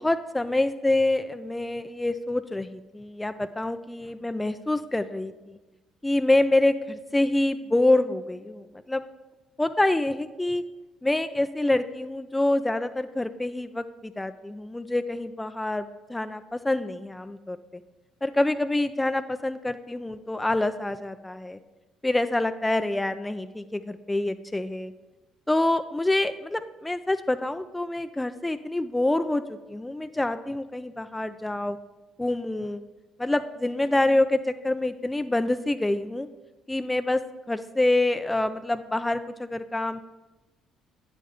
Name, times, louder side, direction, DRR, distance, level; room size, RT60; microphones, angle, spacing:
voice 1, 0.0-5.6 6.0-9.0 9.6-10.6 11.0-17.6 18.2-21.6 22.0-24.9 25.5-29.4 29.7-31.8 32.2-32.8 33.2-34.4 34.6-36.3 36.7-37.2 37.5-40.0, left 2 dB, 15° left, 10 dB, 0.4 m, -26 dB
9.2 x 7.4 x 3.6 m, 1.2 s
hypercardioid pair, 50°, 0 cm